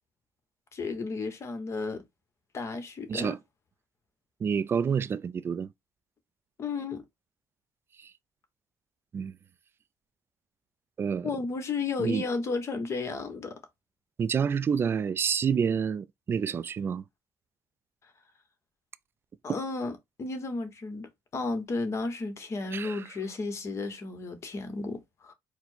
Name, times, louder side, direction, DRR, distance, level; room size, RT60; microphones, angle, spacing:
voice 1, 0.7-2.0 2.5-3.4 6.6-7.0 11.2-13.5 19.4-19.9 20.2-25.3, left 3 dB, 40° left, 1.1 m, -33 dB
voice 2, 4.4-5.7 8.0-8.1 9.1-9.3 11.0-11.3 12.0-12.3 14.2-17.0 19.5-19.6 22.7-23.0, right 7 dB, 30° right, 0.3 m, -28 dB
4.3 x 2.1 x 4.4 m
cardioid pair, 115°, 7 cm